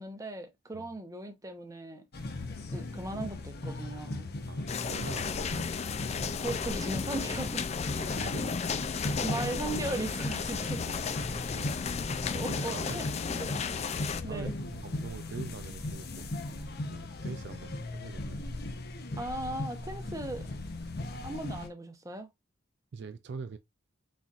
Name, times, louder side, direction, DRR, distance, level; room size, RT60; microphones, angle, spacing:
voice 1, 0.0-2.4 2.7-4.3 6.4-7.7 8.2-8.3 9.2-11.0 12.3-13.6 14.2-14.5 19.2-20.5 21.2-22.3, right 2 dB, 15° right, 0.8 m, -38 dB
sound 1, 2.1-21.7, left 2 dB, 50° left, 0.8 m, -38 dB
voice 2, 4.5-5.7 7.9-8.7 9.1-9.6 10.4-13.1 14.2-16.3 16.9-18.5 22.9-23.6, right 4 dB, 55° right, 0.4 m, -44 dB
sound 2, 4.7-14.2, left 6 dB, 30° left, 0.3 m, -34 dB
4.2 x 4.0 x 2.4 m
head